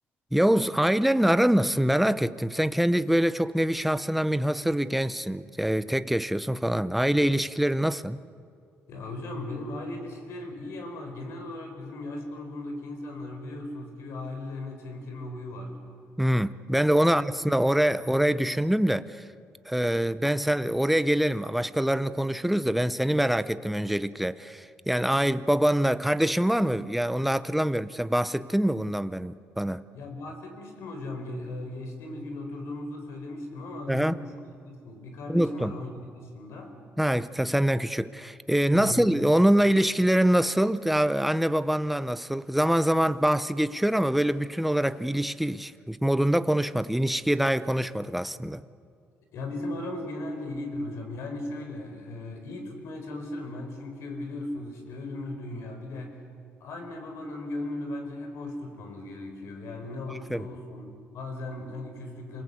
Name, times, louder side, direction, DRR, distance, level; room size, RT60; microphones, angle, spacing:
voice 1, 0.3-8.2 16.2-19.3 19.7-29.8 33.9-34.2 35.3-35.7 37.0-48.6 60.1-60.5, right 1 dB, ahead, 0.6 m, -24 dB
voice 2, 8.9-15.7 17.0-17.2 18.2-18.4 27.6-28.0 29.9-34.4 34.7-36.7 38.7-39.0 49.3-56.2 56.6-62.4, left 2 dB, 70° left, 4.8 m, -37 dB
28.0 x 19.0 x 8.4 m
cardioid pair, 140°, 5 cm